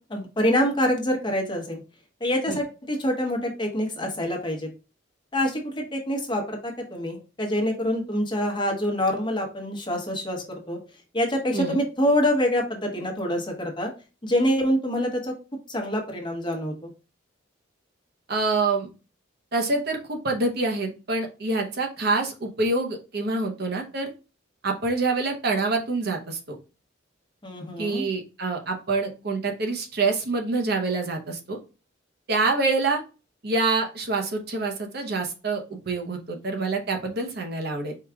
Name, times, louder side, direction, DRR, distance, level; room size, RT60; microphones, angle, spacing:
voice 1, 0.1-1.8 2.2-4.7 5.3-10.8 11.1-13.9 14.2-15.3 15.7-16.9 27.4-28.0, equal, 25° left, 2 dB, 1.0 m, -26 dB
voice 2, 18.3-18.9 19.5-24.1 24.6-26.6 27.8-31.6 32.3-33.0 33.4-37.9, right 3 dB, 55° right, 3 dB, 0.7 m, -26 dB
4.7 x 2.3 x 3.4 m, 0.32 s
head